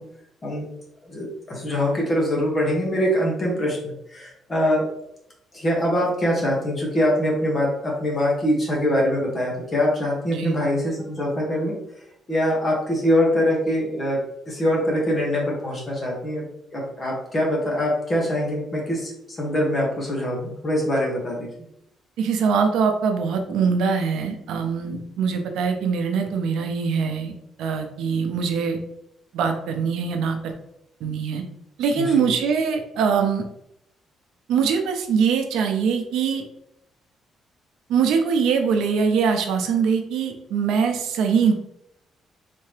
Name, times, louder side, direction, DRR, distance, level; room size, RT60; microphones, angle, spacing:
voice 1, 1.1-4.8 5.5-11.7 12.3-14.2 14.5-16.5 16.7-19.1 19.4-21.5 32.0-32.2, equal, 25° left, -2 dB, 1.0 m, -23 dB
voice 2, 22.2-27.3 27.6-28.8 29.3-30.5 31.0-31.4 31.8-33.4 34.5-36.4 37.9-41.5, right 6 dB, 85° right, 5 dB, 0.5 m, -22 dB
3.3 x 2.8 x 3.2 m, 0.78 s
cardioid pair, 170°, 0 cm